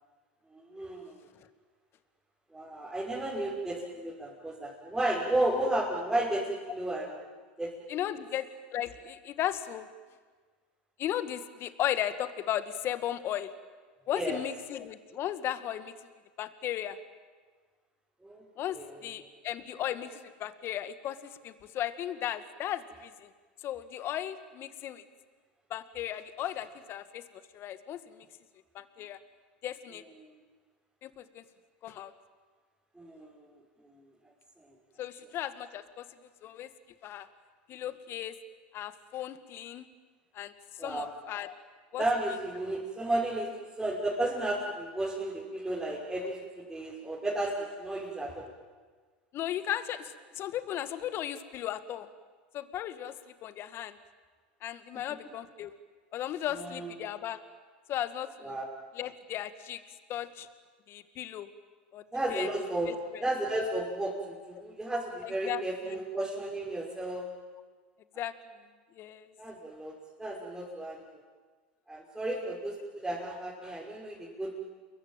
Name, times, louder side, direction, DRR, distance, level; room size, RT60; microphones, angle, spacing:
voice 1, 0.5-1.2 2.5-7.1 7.6-7.7 14.1-14.4 18.2-18.4 18.7-18.9 30.2-30.3 32.9-33.5 33.8-34.0 40.8-41.1 42.0-43.5 43.8-48.4 56.5-57.1 58.4-58.6 62.1-62.9 63.2-67.3 69.4-71.2 71.9-74.5, right 1 dB, 10° right, -5 dB, 6.0 m, -33 dB
voice 2, 7.9-9.9 11.0-13.5 14.1-15.9 16.4-17.0 18.6-23.3 23.6-25.0 25.7-27.2 27.5-28.3 28.7-29.2 29.6-30.0 31.0-31.4 31.8-32.1 35.0-36.1 36.4-36.7 37.0-37.3 37.7-38.3 38.7-39.9 40.3-40.5 40.8-41.6 41.9-42.0 49.3-52.1 52.5-54.0 54.6-55.7 56.1-57.4 57.9-58.6 58.9-59.8 60.1-60.5 60.9-61.5 61.9-62.0 62.3-62.5 62.9-63.2 65.2-66.0 68.2-68.3 69.0-69.3, left 11 dB, 45° left, 11 dB, 2.1 m, -36 dB
29.0 x 22.5 x 9.1 m, 1.5 s
hypercardioid pair, 95°, 5 cm